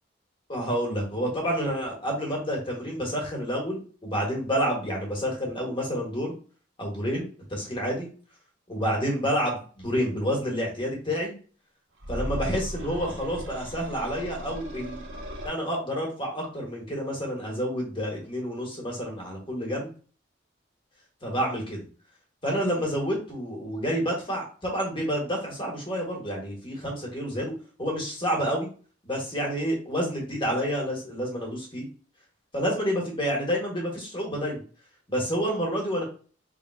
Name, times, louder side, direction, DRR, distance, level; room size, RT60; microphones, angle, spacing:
voice 1, 0.5-6.3 6.8-8.1 8.7-11.3 12.1-15.0 15.4-19.9 21.2-21.8 22.4-27.5 27.8-28.7 29.0-31.9 32.5-34.6 35.1-36.0, equal, 25° left, -1 dB, 1.5 m, -29 dB
sound 1, 12.0-15.5, equal, 80° right, 1.3 m, -36 dB
4.6 x 3.5 x 2.3 m, 0.39 s
head